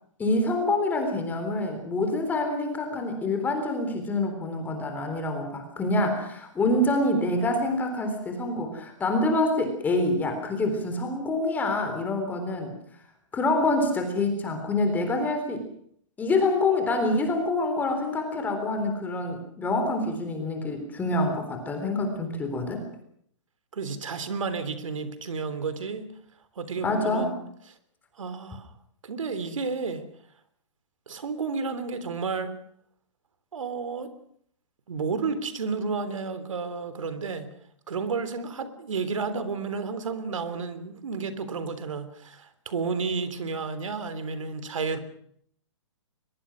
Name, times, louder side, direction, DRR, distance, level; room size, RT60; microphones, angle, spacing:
voice 1, 0.2-12.7 13.3-15.6 16.2-22.8 26.8-27.4, left 2 dB, 10° left, 5 dB, 3.7 m, -26 dB
voice 2, 23.7-26.1 26.5-27.3 28.2-28.7 29.0-30.0 31.1-32.6 33.5-34.1 34.9-37.5 37.9-45.0, right 5 dB, 85° right, 12 dB, 3.4 m, -31 dB
22.5 x 22.0 x 6.3 m, 0.65 s
hypercardioid pair, 155°, 16 cm